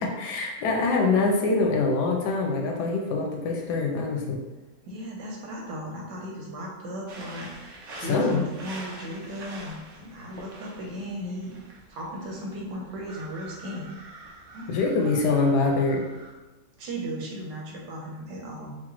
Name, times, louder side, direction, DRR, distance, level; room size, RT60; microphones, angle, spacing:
voice 1, 0.0-4.4 8.0-8.4 14.7-16.0, left 3 dB, 75° left, 2 dB, 1.2 m, -24 dB
voice 2, 4.8-11.6 11.9-13.9 14.5-14.8 15.0-15.2 16.8-18.8, equal, 85° right, -1 dB, 1.5 m, -36 dB
sound 1, 7.1-16.3, right 2 dB, 55° right, 0.9 m, -45 dB
4.8 x 2.2 x 3.0 m, 1.1 s
omnidirectional pair, 1.8 m